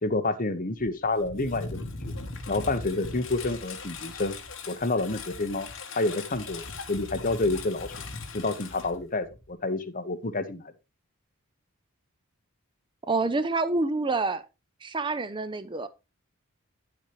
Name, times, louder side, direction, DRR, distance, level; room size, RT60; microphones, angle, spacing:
voice 1, 0.0-1.9 2.5-4.3 4.7-5.7 6.0-7.9 8.3-10.7, left 2 dB, 40° left, 1.1 m, -29 dB
Engine, 0.8-9.5, left 3 dB, 60° left, 1.6 m, -39 dB
voice 2, 13.1-14.4 14.8-15.9, right 3 dB, 20° right, 0.5 m, -27 dB
10.0 x 7.3 x 3.2 m
head